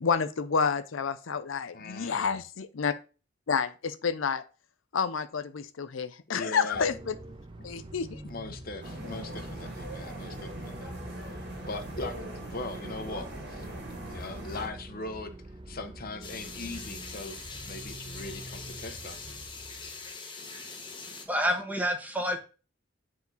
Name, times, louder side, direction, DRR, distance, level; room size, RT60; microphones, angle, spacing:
voice 1, 0.0-2.9 3.5-4.4 4.9-7.1 7.6-8.2, left 6 dB, 75° left, 11 dB, 0.6 m, -29 dB
voice 2, 1.7-2.3 6.3-6.8 8.3-11.0 11.3-11.4 11.7-13.7 14.1-15.3 15.7-19.3, left 2 dB, 45° left, 8 dB, 1.0 m, -40 dB
sound 1, 6.7-20.1, right 1 dB, 25° right, 0.6 m, -45 dB
sound 2, 8.8-14.7, right 1 dB, 55° right, 2.0 m, -41 dB
sound 3, 16.2-21.3, left 4 dB, 25° left, 1.3 m, -43 dB
voice 3, 20.4-22.4, equal, 10° right, 4 dB, 1.1 m, -30 dB
8.4 x 4.8 x 4.0 m, 0.34 s
head